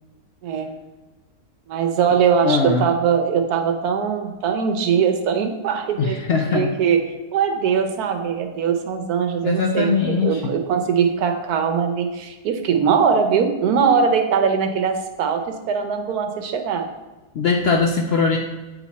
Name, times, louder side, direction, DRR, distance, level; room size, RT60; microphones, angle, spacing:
voice 1, 1.7-6.2 6.5-7.0 7.3-16.8, right 6 dB, 85° right, 5 dB, 1.3 m, -21 dB
voice 2, 2.4-2.9 6.0-6.7 9.4-10.5 17.3-18.4, left 4 dB, 65° left, 2 dB, 0.6 m, -21 dB
8.3 x 3.5 x 4.1 m, 1.1 s
omnidirectional pair, 1.6 m